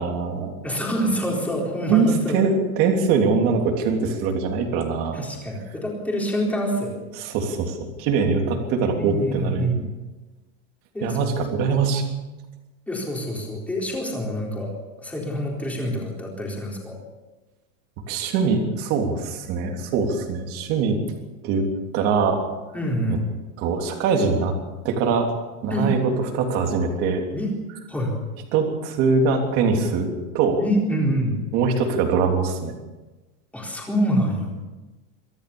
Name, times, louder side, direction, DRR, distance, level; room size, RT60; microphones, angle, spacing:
voice 1, 0.0-0.5 1.9-5.2 7.2-9.7 11.0-12.0 18.1-21.0 21.4-21.7 21.9-22.4 23.6-24.5 24.8-25.3 25.6-26.0 26.3-27.2 28.5-30.6 31.5-32.7, right 5 dB, 35° right, 3 dB, 3.3 m, -22 dB
voice 2, 0.6-2.4 5.1-6.9 9.0-9.8 10.9-11.2 12.9-17.0 22.7-23.2 25.7-25.9 27.3-27.5 27.9-28.2 30.6-31.4 33.5-34.5, equal, 5° left, -2 dB, 4.1 m, -26 dB
24.5 x 15.5 x 7.0 m, 1.1 s
supercardioid pair, 180°, 41 cm